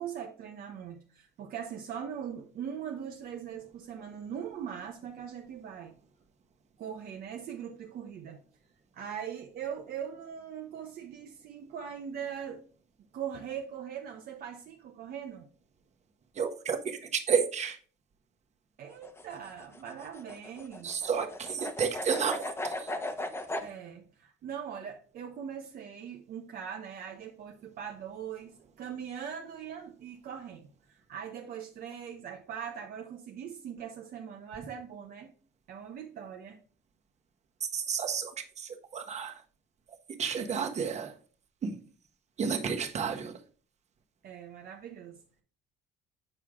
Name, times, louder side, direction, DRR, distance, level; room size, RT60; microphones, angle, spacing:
voice 1, 0.0-5.9 6.8-8.4 8.9-12.6 13.1-15.5 18.8-20.9 23.6-35.3 35.7-36.6 44.2-45.2, right 8 dB, 60° right, 0.9 m, -41 dB
voice 2, 16.3-17.8 20.8-22.9 37.6-38.3 38.6-39.4 40.2-41.1 41.6-41.8 42.4-43.4, right 6 dB, 40° right, 1.4 m, -31 dB
sound 1, 18.9-23.7, left 1 dB, 15° left, 1.1 m, -37 dB
7.7 x 4.7 x 3.6 m
cardioid pair, 110°, 17 cm